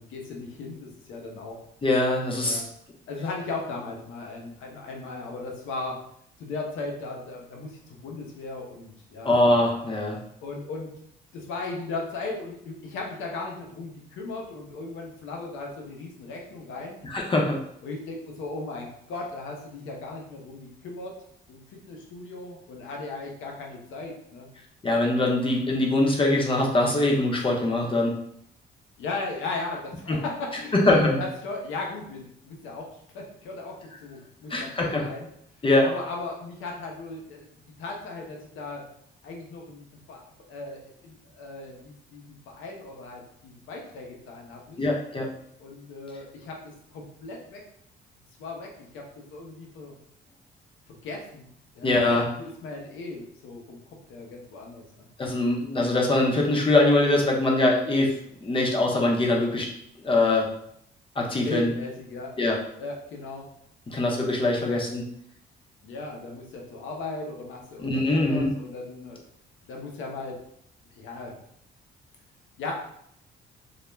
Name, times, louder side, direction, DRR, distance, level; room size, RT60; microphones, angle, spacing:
voice 1, 0.0-1.6 2.4-2.6 3.1-6.0 6.4-9.3 10.4-10.9 11.3-17.0 17.8-21.1 21.5-24.5 29.0-34.7 35.0-35.3 35.8-37.5 37.8-38.8 39.2-40.2 40.5-45.0 45.6-47.6 48.4-49.0 49.3-49.9 51.0-51.5 51.7-55.1 61.4-62.3 62.8-63.5 64.6-64.8 65.8-69.2 69.7-70.4 70.9-71.3 72.6-72.7, left 3 dB, 85° left, 0 dB, 0.7 m, -37 dB
voice 2, 1.8-2.6 9.2-10.2 17.0-17.6 24.8-28.1 30.1-30.2 30.7-31.2 34.5-35.1 35.6-35.9 44.8-45.3 51.8-52.3 55.2-58.1 58.4-59.7 60.0-60.5 61.2-61.7 62.4-62.6 63.9-65.0 67.8-68.5, left 2 dB, 25° left, -1 dB, 0.6 m, -22 dB
2.4 x 2.1 x 3.1 m, 0.70 s
cardioid pair, 90°, 20 cm